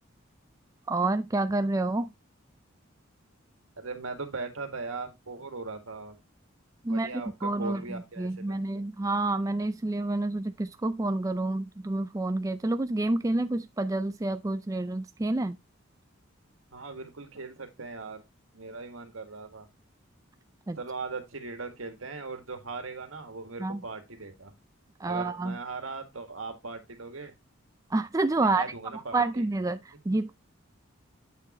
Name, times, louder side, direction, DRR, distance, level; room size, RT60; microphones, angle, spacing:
voice 1, 0.9-2.1 6.8-15.6 20.7-20.8 23.6-23.8 25.0-25.6 27.9-28.6 28.9-30.3, right 2 dB, 15° right, 0.4 m, -29 dB
voice 2, 3.8-6.2 6.9-8.8 16.7-18.2 18.5-19.7 20.8-24.5 25.0-27.3 28.4-29.4, right 3 dB, 85° right, 1.9 m, -39 dB
8.4 x 6.5 x 3.0 m
head